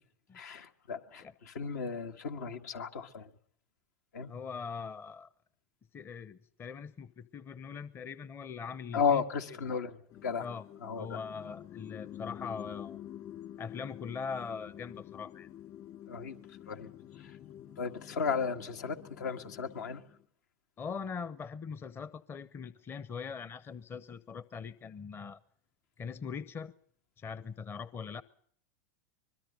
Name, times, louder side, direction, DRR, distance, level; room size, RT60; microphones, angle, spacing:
voice 1, 0.3-3.3 4.1-4.3 8.9-9.9 10.2-10.5 10.8-11.1 16.1-16.4 16.7-16.9 17.2-17.3 17.8-20.0, left 6 dB, 75° left, 1.6 m, -34 dB
voice 2, 4.3-5.3 5.9-9.2 9.5-9.7 10.4-10.6 10.9-13.0 13.6-15.5 20.8-25.4 26.0-26.7 27.2-28.2, left 6 dB, 25° left, 0.8 m, -41 dB
sound 1, 10.1-20.2, left 11 dB, 45° left, 2.5 m, -48 dB
24.0 x 21.5 x 5.5 m
hypercardioid pair, 100°, 9 cm